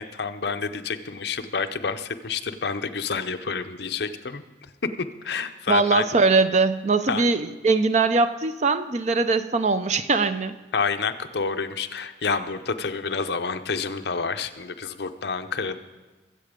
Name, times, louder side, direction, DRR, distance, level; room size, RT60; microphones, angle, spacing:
voice 1, 0.0-4.7 5.2-6.0 7.1-7.2 10.7-15.8, left 5 dB, 60° left, 8 dB, 0.7 m, -29 dB
voice 2, 5.7-10.5, right 4 dB, 35° right, 11 dB, 0.5 m, -21 dB
21.5 x 7.9 x 5.1 m, 1.2 s
head